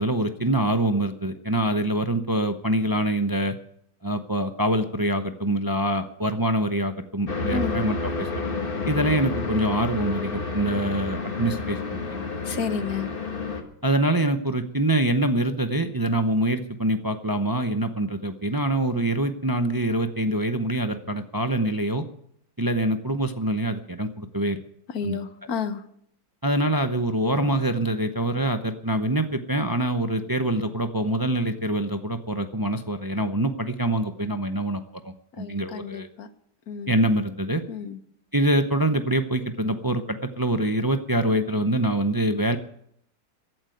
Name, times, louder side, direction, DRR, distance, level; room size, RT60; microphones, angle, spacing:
voice 1, 0.0-3.6 4.0-8.3 8.9-12.2 13.8-22.0 22.6-24.6 25.0-25.2 26.4-36.1 36.9-37.6 38.3-42.6, right 1 dB, 25° right, 8 dB, 0.4 m, -25 dB
sound 1, 7.3-13.6, left 4 dB, 35° left, 1.8 m, -30 dB
voice 2, 7.5-7.8 12.5-13.1 24.9-25.8 35.4-36.3 36.7-36.9 37.7-38.0, left 6 dB, 65° left, 11 dB, 1.6 m, -31 dB
14.5 x 8.9 x 9.2 m, 0.71 s
omnidirectional pair, 1.8 m